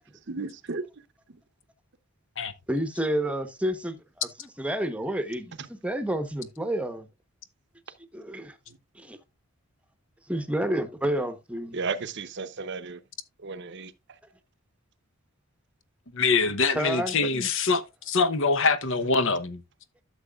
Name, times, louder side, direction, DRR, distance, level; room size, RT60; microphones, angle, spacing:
voice 1, 0.3-0.9 5.6-5.7 8.7-8.8 11.7-13.0 13.4-13.9, right 4 dB, 50° right, 0.8 m, -34 dB
voice 2, 2.7-4.3 4.6-7.1 8.1-8.5 9.0-9.2 10.3-11.8 16.7-17.5, right 1 dB, 5° right, 1.0 m, -30 dB
voice 3, 16.1-19.6, left 4 dB, 60° left, 0.9 m, -24 dB
12.5 x 6.9 x 2.4 m
head